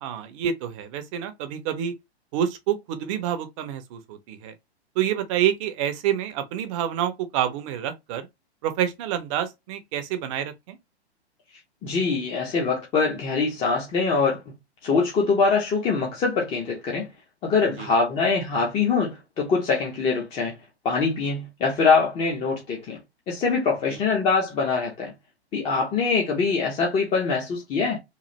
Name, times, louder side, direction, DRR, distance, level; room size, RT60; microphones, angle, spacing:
voice 1, 0.0-2.0 2.3-4.5 5.0-8.3 8.6-10.8 17.8-17.9 23.9-24.0, right 10 dB, 30° right, 0.5 m, -28 dB
voice 2, 11.8-14.4 14.8-17.1 17.4-20.5 20.8-23.0 23.3-25.1 25.5-28.0, left 4 dB, 15° left, 0.5 m, -23 dB
3.1 x 2.4 x 2.8 m
figure-of-eight pair, 115°, 33 cm